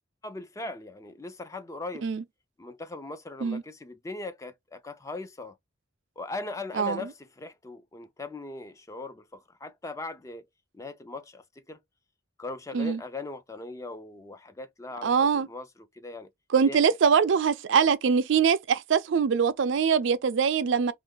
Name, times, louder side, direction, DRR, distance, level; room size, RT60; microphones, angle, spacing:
voice 1, 0.2-2.1 2.6-5.6 6.2-10.4 10.7-11.8 12.4-15.7 15.9-16.3 16.7-16.9, left 2 dB, 15° left, 0.3 m, -39 dB
voice 2, 15.0-15.5 16.5-20.9, right 6 dB, 65° right, 0.4 m, -23 dB
2.7 x 2.5 x 3.7 m
head